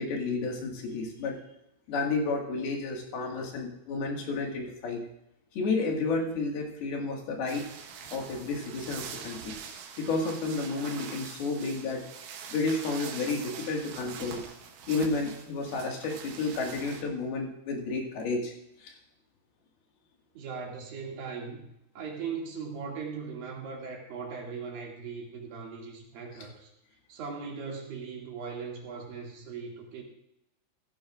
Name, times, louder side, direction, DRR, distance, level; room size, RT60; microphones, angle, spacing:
voice 1, 0.0-1.4 1.9-5.0 5.5-7.6 8.1-9.5 10.0-12.0 12.5-14.4 14.9-18.5 18.8-18.9, left 3 dB, 60° left, 0 dB, 3.3 m, -31 dB
sound 1, 7.5-17.0, right 7 dB, 85° right, 4.1 m, -44 dB
voice 2, 20.3-21.7 22.0-26.7 27.1-30.0, right 5 dB, 55° right, -1 dB, 3.5 m, -39 dB
15.5 x 14.5 x 2.5 m, 0.81 s
omnidirectional pair, 5.8 m